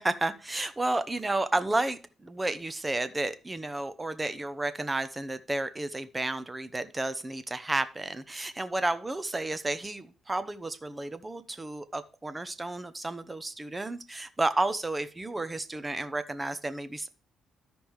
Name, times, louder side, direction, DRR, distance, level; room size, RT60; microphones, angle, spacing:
voice 1, 0.0-17.1, right 2 dB, 15° right, 12 dB, 0.8 m, -32 dB
13.5 x 5.2 x 3.2 m, 0.34 s
cardioid pair, 90°, 0 cm